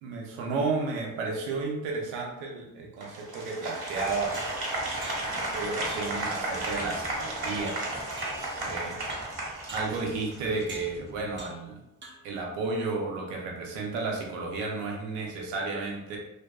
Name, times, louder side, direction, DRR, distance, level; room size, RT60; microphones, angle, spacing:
voice 1, 0.0-4.5 5.2-7.8 8.6-9.1 9.7-11.8 12.2-16.2, right 3 dB, 85° right, 0 dB, 0.7 m, -32 dB
Applause, 3.0-10.6, right 2 dB, 50° right, 1.1 m, -34 dB
sound 1, 3.8-11.4, equal, 15° left, 0.5 m, -49 dB
sound 2, 4.3-5.5 5.9-6.2 6.6-7.0 7.7-8.7 9.1-9.4 9.7-10.0 10.7-11.0 11.4-11.7 12.0-12.4, right 2 dB, 25° right, 0.7 m, -45 dB
2.5 x 2.2 x 2.2 m, 0.89 s
hypercardioid pair, 45°, 49 cm